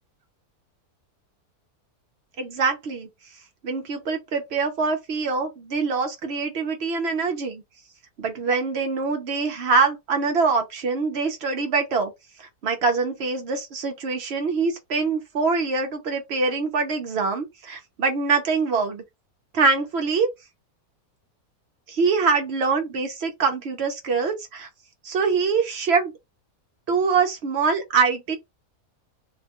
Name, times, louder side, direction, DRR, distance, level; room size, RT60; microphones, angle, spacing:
voice 1, 2.4-3.1 3.6-7.6 8.2-12.1 12.4-19.0 19.5-20.3 21.9-24.7 25.0-26.1 26.9-28.4, right 4 dB, 60° right, 0.7 m, -24 dB
2.7 x 2.2 x 2.8 m
omnidirectional pair, 1.6 m